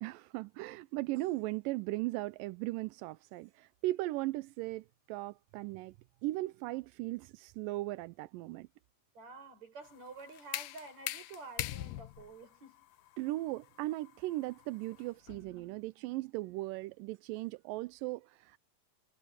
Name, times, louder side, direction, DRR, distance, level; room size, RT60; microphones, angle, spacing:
voice 1, 0.0-6.0 6.2-8.7 13.2-18.6, right 18 dB, 80° right, 2.1 m, -38 dB
voice 2, 9.1-12.9, right 3 dB, 50° right, 8.2 m, -50 dB
sound 1, 9.8-15.6, left 15 dB, 75° left, 2.3 m, -43 dB
omnidirectional pair, 4.2 m